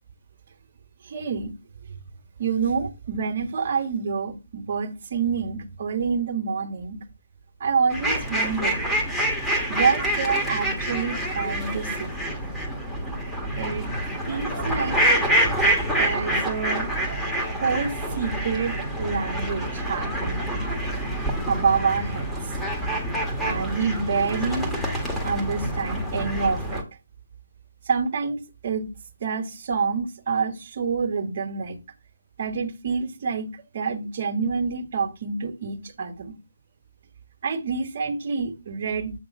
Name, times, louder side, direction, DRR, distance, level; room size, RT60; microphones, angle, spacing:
voice 1, 1.0-1.5 2.4-7.0 7.6-8.8 9.7-12.2 13.6-13.9 14.3-15.0 16.0-16.9 17.6-20.6 21.5-22.3 23.4-24.7 25.2-26.9 27.9-28.9 29.2-31.8 32.4-36.4 37.4-39.1, right 5 dB, 45° right, 1.7 m, -27 dB
sound 1, 7.9-26.8, right 1 dB, 5° left, 1.6 m, -27 dB
8.6 x 3.6 x 5.3 m
figure-of-eight pair, 145°, 0 cm